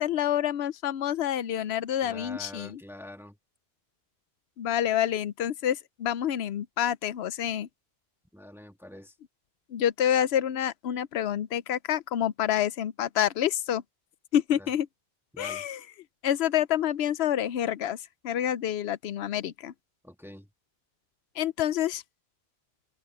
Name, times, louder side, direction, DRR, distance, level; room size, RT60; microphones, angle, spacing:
voice 1, 0.0-2.8 4.6-7.7 9.7-13.8 14.3-14.9 15.4-15.8 16.2-19.7 21.4-22.0, left 10 dB, 85° left, 0.9 m, -28 dB
voice 2, 2.0-3.4 8.3-9.2 14.6-14.7 15.3-15.7 20.0-20.5, left 1 dB, ahead, 1.9 m, -45 dB
open air
omnidirectional pair, 1.0 m